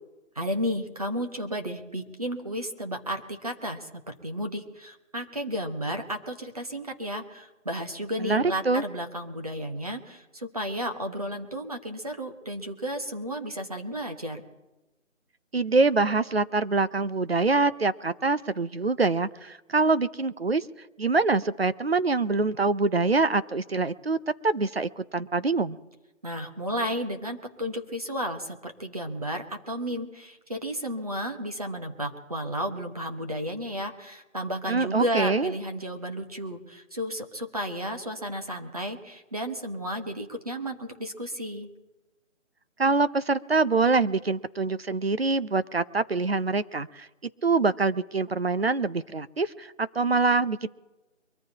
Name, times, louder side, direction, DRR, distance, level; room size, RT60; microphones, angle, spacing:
voice 1, 0.3-14.4 26.2-41.7, equal, 30° right, 4 dB, 1.3 m, -33 dB
voice 2, 8.2-8.8 15.5-20.7 21.0-24.2 24.4-25.8 34.7-35.5 42.8-47.1 47.4-50.7, right 3 dB, 50° right, 14 dB, 0.7 m, -25 dB
24.0 x 14.0 x 2.9 m, 1.1 s
figure-of-eight pair, 175°, 38 cm